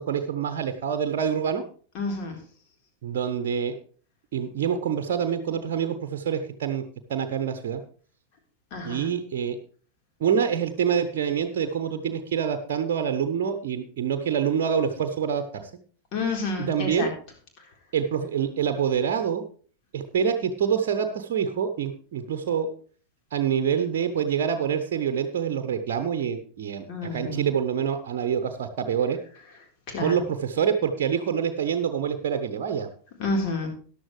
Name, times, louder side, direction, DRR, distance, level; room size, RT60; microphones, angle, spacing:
voice 1, 0.0-1.6 3.0-3.7 4.3-6.8 7.1-7.8 8.8-9.6 10.2-15.7 16.6-17.1 17.9-19.4 19.9-22.7 23.3-29.2 30.0-32.9, right 7 dB, 50° right, 8 dB, 0.9 m, -26 dB
voice 2, 1.9-2.3 8.7-9.1 16.1-17.1 26.9-27.5 29.9-30.2 33.2-33.7, left 3 dB, 40° left, 2 dB, 3.9 m, -29 dB
14.0 x 11.5 x 3.2 m, 0.43 s
figure-of-eight pair, 90°, 0 cm